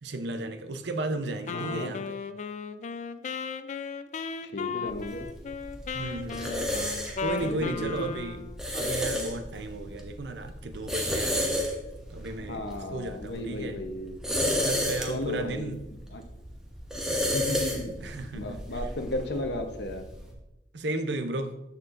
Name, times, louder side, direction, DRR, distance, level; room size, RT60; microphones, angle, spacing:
voice 1, 0.0-2.0 5.9-6.6 6.9-8.4 8.7-11.6 12.1-12.6 12.9-13.7 14.6-15.8 18.0-18.6 20.7-21.5, right 2 dB, 70° right, 8 dB, 0.6 m, -34 dB
voice 2, 1.5-1.9 4.4-5.3 7.4-8.1 12.5-14.2 15.1-15.7 16.1-16.2 17.2-18.0 18.3-20.0, left 1 dB, 65° left, 5 dB, 0.9 m, -34 dB
Wind instrument woodwind instrument, 1.5-8.6, left 5 dB, 40° left, 0.3 m, -36 dB
sound 1, 4.9-20.3, left 1 dB, 5° right, 1.0 m, -33 dB
13.0 x 4.4 x 2.5 m, 0.92 s
head